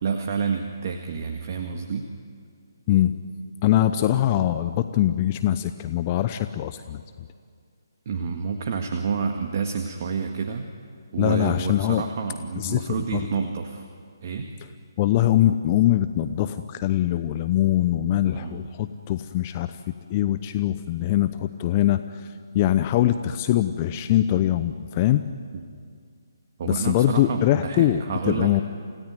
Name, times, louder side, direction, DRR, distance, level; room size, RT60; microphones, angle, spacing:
voice 1, 0.0-2.1 8.1-10.7 11.1-13.9 14.2-14.5 18.3-18.6 25.5-25.6 26.6-28.5, right 5 dB, 45° right, 4 dB, 1.8 m, -29 dB
voice 2, 3.6-7.0 11.2-12.0 12.6-13.2 15.0-19.8 20.1-25.2 26.6-28.6, left 13 dB, 30° left, 11 dB, 0.8 m, -22 dB
28.5 x 17.5 x 9.5 m, 2.1 s
figure-of-eight pair, 145°, 2 cm